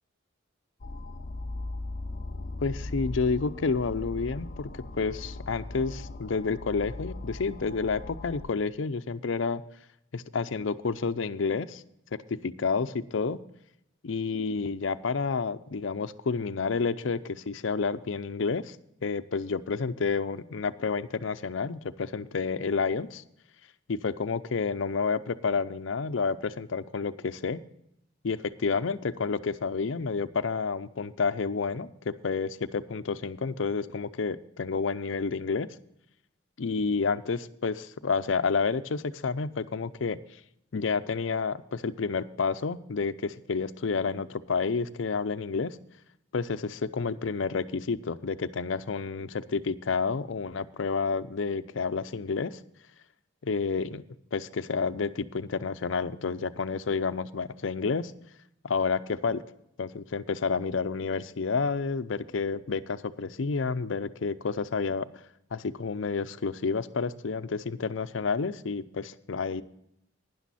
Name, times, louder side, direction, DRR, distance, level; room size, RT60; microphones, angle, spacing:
sound 1, 0.8-8.4, left 2 dB, 50° left, 0.7 m, -38 dB
voice 1, 2.6-4.7 5.0-9.6 10.1-11.8 12.3-13.4 14.0-18.8 19.0-23.2 23.9-27.6 28.2-35.7 36.6-40.2 40.7-45.8 46.3-52.6 53.4-54.0 54.3-58.1 58.6-59.4 59.8-65.1 65.5-69.6, left 4 dB, 85° left, 13 dB, 0.6 m, -30 dB
12.5 x 10.5 x 4.1 m, 0.76 s
head